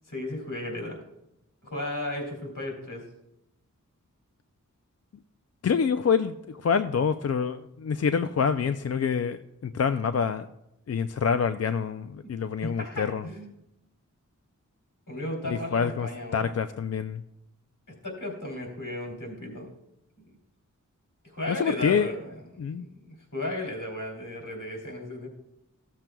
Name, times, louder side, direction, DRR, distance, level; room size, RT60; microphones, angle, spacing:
voice 1, 0.1-1.0 1.6-3.0 12.6-13.5 15.1-16.4 18.0-19.7 21.2-22.4 22.8-25.3, left 1 dB, 75° left, 0 dB, 2.9 m, -35 dB
voice 2, 5.6-10.5 10.9-13.2 15.5-17.2 21.5-22.1 22.6-22.9, left 6 dB, 55° left, 10 dB, 0.4 m, -26 dB
15.0 x 7.5 x 2.3 m, 0.85 s
wide cardioid pair, 45°, 31 cm